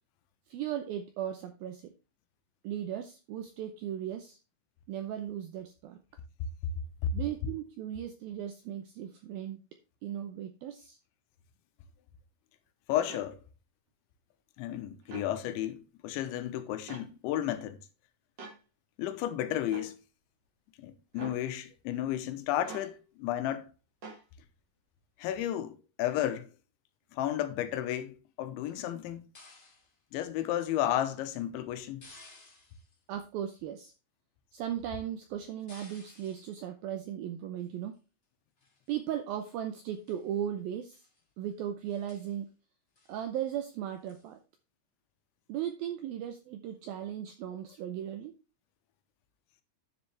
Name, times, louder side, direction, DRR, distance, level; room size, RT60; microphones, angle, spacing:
voice 1, 0.5-1.9 2.6-4.4 4.9-6.0 7.1-9.6 10.0-11.0 33.1-33.9 34.5-38.0 38.9-41.0 41.4-42.5 43.1-44.4 45.5-48.3, right 10 dB, 80° right, 2.1 m, -37 dB
voice 2, 12.9-13.4 14.6-17.8 19.0-20.0 20.8-23.7 25.2-26.5 27.1-29.2 30.1-32.1, left 11 dB, 85° left, 3.3 m, -33 dB
sound 1, 13.1-13.3 15.0-15.3 16.9-17.1 18.4-18.6 19.7-19.9 21.1-21.4 22.6-22.9 24.0-24.2, right 3 dB, 65° right, 1.1 m, -44 dB
sound 2, 29.3-29.9 32.0-33.0 35.7-36.5 37.6-38.0 38.6-39.1 39.4-39.6 39.9-40.3 40.8-41.2 41.5-41.6 41.8-42.4 43.0-43.2 44.1-44.3, left 2 dB, 20° left, 2.0 m, -56 dB
10.0 x 7.3 x 3.3 m
omnidirectional pair, 5.2 m